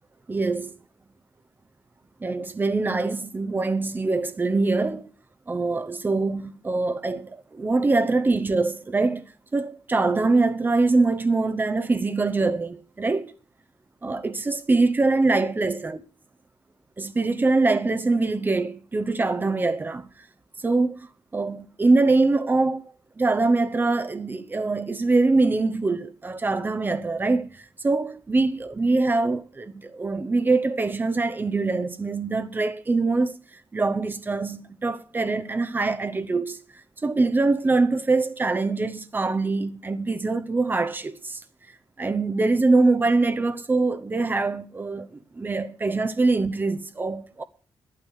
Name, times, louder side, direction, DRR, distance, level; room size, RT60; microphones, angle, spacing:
voice 1, 0.3-0.7 2.2-5.1 5.5-13.3 14.0-16.0 17.0-20.0 20.6-21.0 21.3-33.4 33.7-36.6 37.0-41.4 42.0-47.4, right 3 dB, 20° right, 0.8 m, -23 dB
12.0 x 9.5 x 6.4 m
wide cardioid pair, 175°, 9 cm